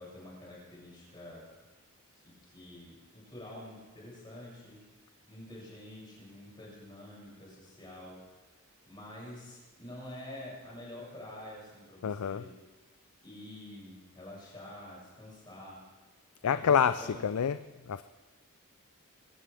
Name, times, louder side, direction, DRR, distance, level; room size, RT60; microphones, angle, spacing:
voice 1, 0.0-1.5 2.1-4.8 5.3-12.5 13.2-15.8 16.4-17.2, left 1 dB, 20° left, -5 dB, 6.8 m, -48 dB
voice 2, 12.0-12.4 16.4-17.6 17.8-18.0, left 7 dB, 80° left, 12 dB, 0.4 m, -27 dB
22.5 x 17.0 x 3.5 m, 1.2 s
head